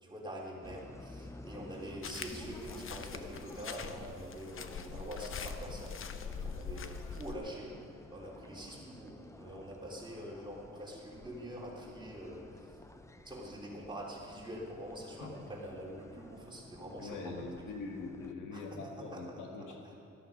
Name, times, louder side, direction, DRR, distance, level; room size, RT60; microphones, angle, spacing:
voice 1, 0.0-6.0 6.3-7.8 8.1-12.4 13.2-17.7 18.5-18.8 19.1-19.2, equal, 15° right, -3 dB, 3.3 m, -45 dB
sound 1, 0.6-18.3, left 2 dB, 10° left, 0.6 m, -53 dB
sound 2, 2.0-7.4, left 6 dB, 45° left, 0.8 m, -43 dB
voice 2, 17.0-19.9, left 3 dB, 85° left, 2 dB, 1.8 m, -43 dB
13.0 x 12.5 x 5.5 m, 2.6 s
cardioid pair, 90°, 30 cm